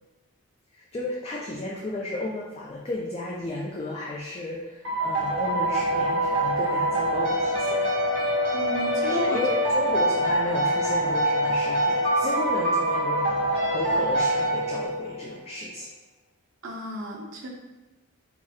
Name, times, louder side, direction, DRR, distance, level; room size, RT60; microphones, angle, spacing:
voice 1, 0.7-7.9 9.0-15.9, left 2 dB, 30° left, -3 dB, 0.3 m, -33 dB
sound 1, 4.8-15.2, right 1 dB, 50° right, 1.3 m, -24 dB
voice 2, 8.5-9.4 16.6-17.5, equal, 65° right, -1 dB, 0.7 m, -33 dB
4.7 x 2.3 x 2.7 m, 1.1 s
head